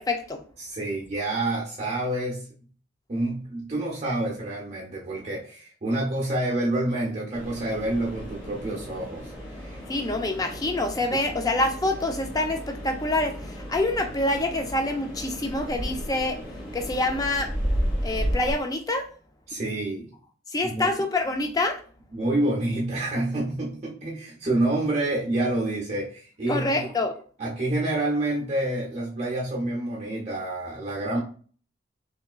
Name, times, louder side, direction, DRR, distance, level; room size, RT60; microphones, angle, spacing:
voice 1, 0.0-0.4 9.9-16.4 16.7-17.5 18.0-19.1 20.5-21.8 26.5-27.1, left 2 dB, 20° left, 5 dB, 0.3 m, -26 dB
voice 2, 0.6-2.5 3.1-9.8 19.5-20.1 20.6-20.9 22.1-26.9 27.4-31.2, right 1 dB, 35° right, -3 dB, 0.6 m, -28 dB
sound 1, 7.3-18.5, equal, 75° left, 1.4 m, -33 dB
3.4 x 2.9 x 2.4 m, 0.43 s
head